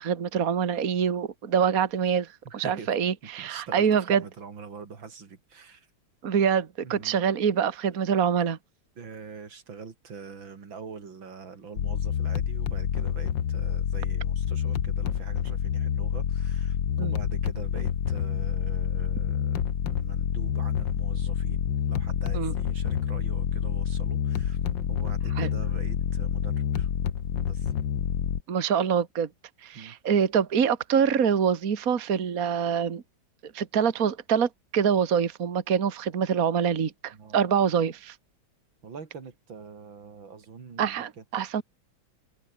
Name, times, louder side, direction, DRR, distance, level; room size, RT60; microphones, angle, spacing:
voice 1, 0.0-4.2 6.2-8.6 17.0-17.1 22.3-22.5 25.4-25.5 28.5-29.3 29.6-33.0 33.5-38.2 40.8-41.6, right 7 dB, 50° right, 1.9 m, -25 dB
voice 2, 2.5-2.9 3.4-5.9 6.8-7.2 9.0-19.6 19.8-21.6 21.9-24.6 24.9-26.9 27.5-27.7 29.7-30.0 37.1-37.4 38.8-41.2, right 5 dB, 80° right, 3.5 m, -44 dB
sound 1, 11.8-28.4, left 9 dB, 70° left, 2.1 m, -28 dB
omnidirectional pair, 2.1 m